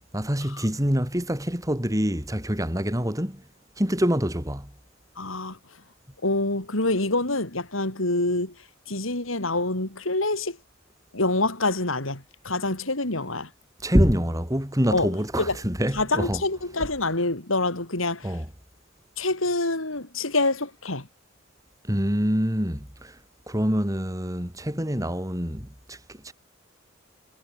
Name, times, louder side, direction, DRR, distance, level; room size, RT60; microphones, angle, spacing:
voice 1, 0.1-3.4 3.8-4.7 13.8-16.4 18.2-18.5 21.9-23.1 23.5-26.0 26.2-26.3, equal, 15° right, 5.4 m, -25 dB
voice 2, 5.2-5.6 6.2-8.5 8.9-10.6 11.1-13.5 14.9-15.1 15.4-15.6 15.9-18.3 19.2-21.1, left 2 dB, 90° left, 5.2 m, -26 dB
head